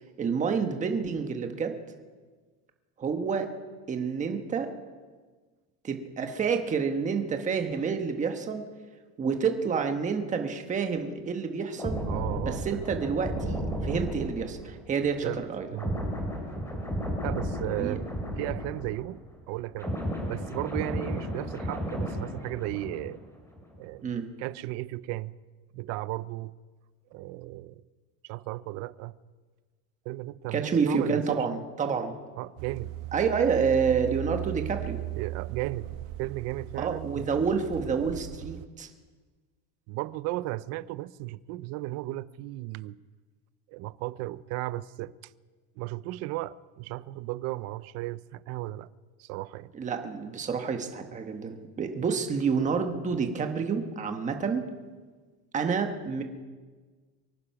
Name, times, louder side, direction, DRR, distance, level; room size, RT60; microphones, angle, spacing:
voice 1, 0.2-1.8 3.0-3.5 3.9-4.7 5.8-8.6 9.2-12.0 12.4-15.7 17.8-18.0 24.0-24.3 30.5-32.1 33.1-35.0 36.7-38.9 49.7-54.7 55.5-56.2, right 5 dB, 20° right, 1.2 m, -28 dB
sound 1, 11.8-19.3 19.5-23.2 23.5-23.8, equal, 5° left, 3.0 m, -33 dB
voice 2, 12.1-12.9 15.2-15.4 15.7-15.9 17.2-18.0 18.4-19.2 19.5-20.0 20.2-23.2 23.8-24.1 24.4-25.3 25.7-26.5 27.1-27.8 28.2-29.1 30.1-31.4 32.4-32.9 35.2-35.9 36.2-37.3 39.9-43.0 43.7-45.3 45.8-48.9 49.2-49.7, right 17 dB, 40° right, 0.4 m, -35 dB
sound 2, 32.6-38.7, right 16 dB, 75° right, 1.1 m, -38 dB
23.5 x 9.8 x 5.9 m
cardioid pair, 160°, 41 cm